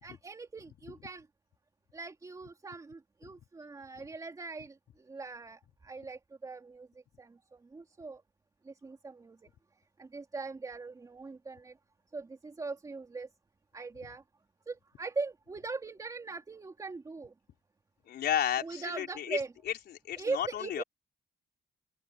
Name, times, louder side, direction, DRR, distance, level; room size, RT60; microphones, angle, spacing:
voice 1, 0.0-1.3 1.9-8.2 8.6-9.4 10.0-11.8 12.1-13.3 13.7-14.2 14.7-17.3 18.6-19.5 20.2-20.8, right 3 dB, 20° right, 3.4 m, -41 dB
voice 2, 18.1-19.4 19.7-20.8, left 10 dB, 65° left, 4.2 m, -33 dB
open air
cardioid pair, 170°, 18 cm